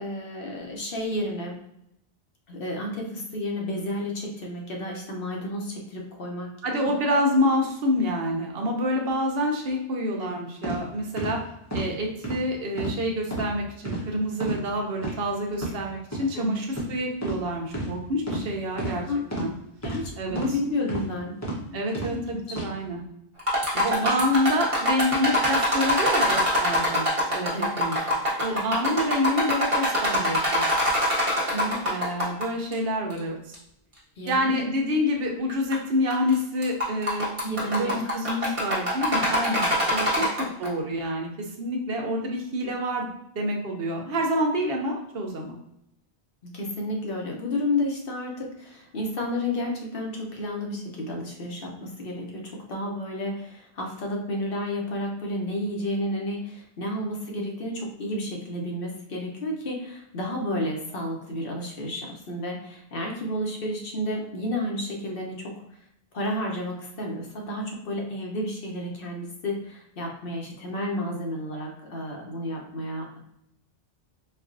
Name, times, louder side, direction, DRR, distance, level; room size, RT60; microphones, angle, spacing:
voice 1, 0.0-1.6 2.5-6.5 10.2-10.3 16.3-16.6 19.0-19.2 19.8-21.4 22.1-22.6 23.7-24.2 24.5-24.6 27.5-27.7 28.5-28.7 31.5-31.8 34.2-34.6 37.4-38.1 39.9-40.2 46.4-65.5 66.1-73.2, left 1 dB, 60° left, 0 dB, 0.9 m, -31 dB
voice 2, 6.6-11.4 11.7-19.0 19.3-19.5 20.2-20.4 21.7-23.0 23.8-27.0 27.3-28.0 28.4-30.7 31.8-33.5 34.3-37.3 37.6-45.6, equal, 65° right, 1 dB, 0.8 m, -27 dB
sound 1, 10.6-10.8 11.2-11.3 11.7-11.9 12.2-12.4 12.8-13.0 13.3-13.5 13.8-14.0 14.4-14.6 15.0-15.1 15.5-15.7 16.1-16.2 16.7-16.9 17.2-17.4 17.7-17.9 18.3-18.4 18.8-18.9 19.3-19.5 19.8-20.0 20.3-20.5 20.9-21.1 21.4-21.6 21.9-22.1 22.5-22.7, right 1 dB, 15° left, 0.8 m, -30 dB
sound 2, 23.4-32.4 32.7-32.8 33.5-33.6 34.3-34.4 35.5-35.7 36.1-36.3 36.6-40.7, equal, 30° right, 1.2 m, -24 dB
4.3 x 2.3 x 2.5 m, 0.78 s
omnidirectional pair, 1.1 m